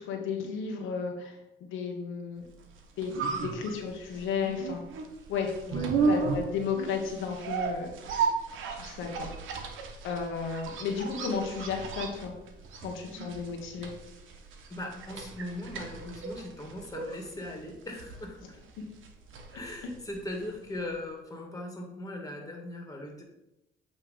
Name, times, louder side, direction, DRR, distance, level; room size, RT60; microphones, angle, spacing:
voice 1, 0.0-2.4 3.0-4.8 5.3-5.5 6.1-7.9 8.7-9.3 10.0-12.3 12.8-13.9 19.5-19.6, left 6 dB, 90° left, 2 dB, 1.2 m, -33 dB
sound 1, 2.6-20.6 20.9-21.0, right 5 dB, 80° right, 1.1 m, -35 dB
voice 2, 5.7-6.3 14.7-18.6 19.5-23.2, left 1 dB, 15° left, 2 dB, 1.8 m, -39 dB
8.2 x 3.2 x 5.0 m, 0.91 s
cardioid pair, 90°, 20 cm